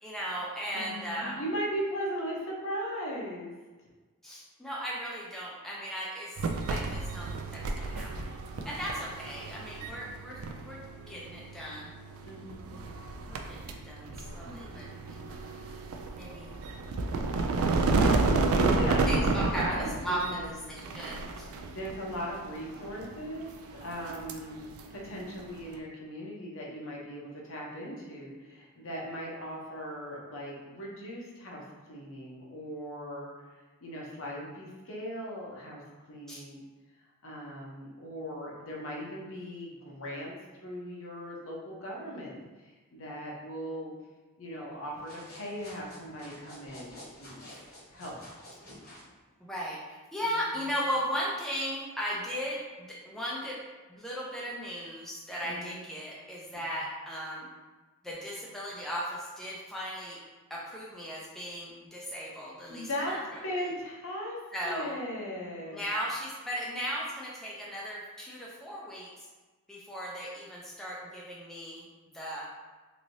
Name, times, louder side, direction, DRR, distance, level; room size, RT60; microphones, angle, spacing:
voice 1, 0.0-1.4 4.2-6.4 6.7-8.3 8.6-10.8 11.1-11.9 13.2-15.4 16.2-16.6 17.6-18.0 19.1-21.5 36.3-36.4 49.4-53.6 53.9-57.5 58.0-60.2 60.5-63.2 64.5-64.9 65.7-69.3 69.7-71.9 72.1-72.5, equal, ahead, -6 dB, 0.4 m, -37 dB
voice 2, 0.7-3.5 8.5-9.1 12.2-12.8 14.4-15.2 18.5-19.3 19.5-20.5 21.6-23.5 23.8-33.3 33.8-35.8 36.1-36.6 37.2-40.3 40.6-43.9 44.4-47.4 47.9-48.2 50.2-50.5 55.4-55.8 56.5-56.7 62.7-63.1 63.4-65.8, equal, 65° left, -3 dB, 0.7 m, -38 dB
sound 1, 6.4-25.8, right 3 dB, 75° right, 0.3 m, -32 dB
sound 2, 44.9-49.1, left 1 dB, 45° left, 1.0 m, -50 dB
3.1 x 2.7 x 2.6 m, 1.3 s
head